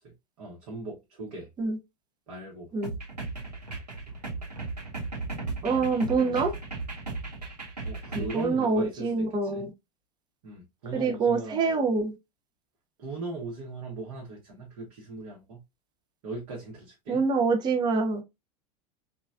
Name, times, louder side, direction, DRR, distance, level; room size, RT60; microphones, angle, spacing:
voice 1, 0.4-1.5 2.3-2.7 5.7-6.4 7.8-9.7 10.4-11.7 13.0-15.6 16.2-17.2, right 2 dB, 50° right, 1.0 m, -39 dB
sound 1, 2.8-8.5, right 3 dB, 85° right, 0.9 m, -36 dB
voice 2, 5.6-6.5 8.1-9.7 10.9-12.2 17.1-18.2, right 4 dB, 20° right, 0.6 m, -25 dB
3.0 x 2.3 x 2.3 m
figure-of-eight pair, 85°, 20 cm